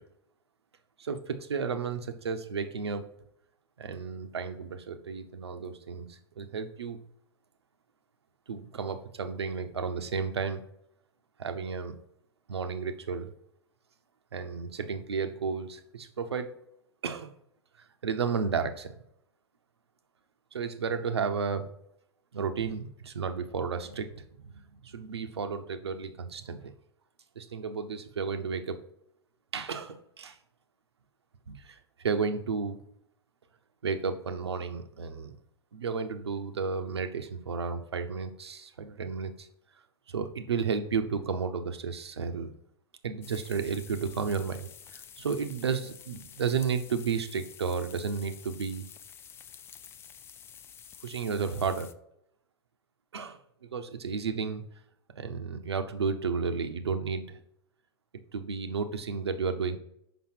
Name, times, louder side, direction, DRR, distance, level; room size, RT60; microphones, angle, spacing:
voice 1, 1.0-3.0 3.8-7.0 8.5-10.6 11.4-12.0 12.5-13.3 14.3-16.6 17.0-17.3 18.0-18.9 20.5-21.7 22.3-24.1 24.4-26.7 27.4-28.8 29.5-30.4 31.5-32.8 33.8-35.3 35.7-39.5 40.1-42.5 43.0-48.8 51.0-51.9 53.1-53.4 53.7-54.6 55.2-57.4 58.3-59.8, right 5 dB, 75° right, 8 dB, 0.8 m, -32 dB
sound 1, 43.2-51.9, left 8 dB, 15° left, 0.3 m, -50 dB
6.1 x 5.4 x 4.4 m, 0.75 s
figure-of-eight pair, 95°, 14 cm